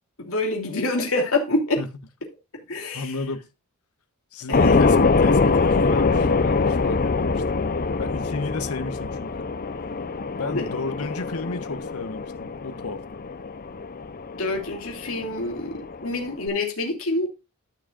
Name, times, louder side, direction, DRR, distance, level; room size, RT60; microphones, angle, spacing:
voice 1, 0.2-1.8 2.7-3.1 4.5-4.8 10.5-10.6 14.4-17.3, left 2 dB, 65° left, 2.9 m, -26 dB
voice 2, 2.9-3.5 4.3-7.6 8.0-9.5 10.4-13.0, left 3 dB, 80° left, 1.1 m, -33 dB
sound 1, 4.5-16.5, left 4 dB, 40° left, 0.7 m, -24 dB
13.0 x 6.3 x 2.5 m
head